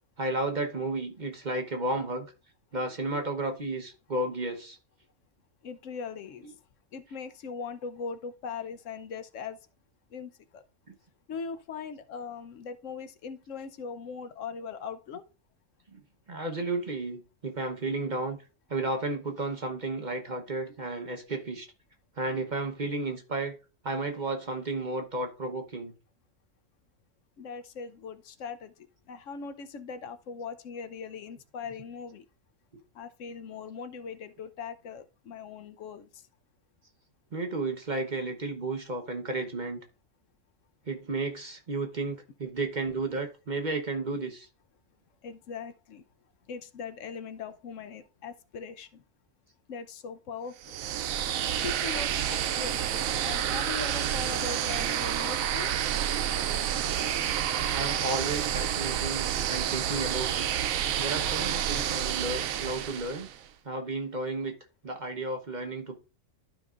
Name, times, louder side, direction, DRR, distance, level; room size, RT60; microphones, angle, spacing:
voice 1, 0.2-2.3 2.7-4.8 6.4-6.6 15.9-16.0 16.3-18.4 18.7-21.7 22.2-23.6 23.8-25.9 37.3-39.8 40.9-44.5 57.7-60.5 61.0-63.3 63.6-64.5 64.8-66.0, right 2 dB, 40° right, 1.1 m, -33 dB
voice 2, 5.6-6.5 6.9-9.6 10.1-10.6 11.3-15.2 27.4-28.7 29.1-32.2 32.9-36.2 45.2-46.0 46.5-49.0 49.7-50.8 51.6-55.8, left 5 dB, 70° left, 1.0 m, -40 dB
sound 1, 50.6-63.4, right 10 dB, 90° right, 1.0 m, -29 dB
12.0 x 5.2 x 2.4 m
omnidirectional pair, 1.4 m